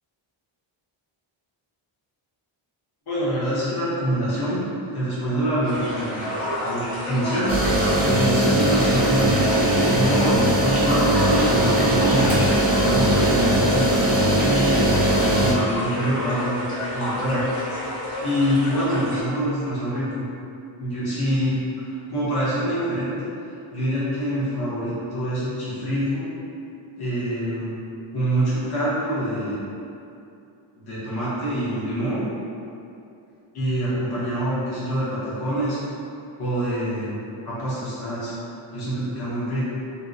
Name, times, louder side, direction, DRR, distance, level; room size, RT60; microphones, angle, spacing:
voice 1, 3.1-4.6 4.9-6.2 6.6-7.5 8.0-9.4 9.8-14.7 15.4-16.6 16.9-17.4 18.2-20.2 20.8-21.6 21.9-23.3 23.7-26.3 27.0-27.7 28.1-29.6 30.7-32.2 33.5-35.8 36.4-37.2 37.4-38.3 38.7-39.7, right 1 dB, 50° left, -10 dB, 1.0 m, -25 dB
sound 1, 5.6-19.2, left 1 dB, 85° left, 1.0 m, -30 dB
sound 2, 7.5-15.5, right 1 dB, 20° right, 0.5 m, -20 dB
2.8 x 2.1 x 3.8 m, 2.6 s
wide cardioid pair, 170°, 49 cm